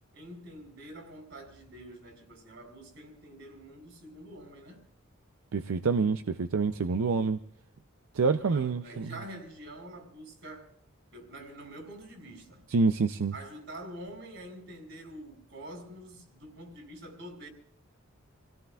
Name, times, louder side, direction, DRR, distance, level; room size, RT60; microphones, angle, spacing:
voice 1, 0.1-4.8 8.3-10.7 11.1-12.6 13.3-17.5, right 1 dB, 60° right, 3.6 m, -46 dB
voice 2, 5.5-7.4 8.1-9.1 12.7-13.3, right 4 dB, 85° right, 0.5 m, -27 dB
28.0 x 17.0 x 2.3 m
head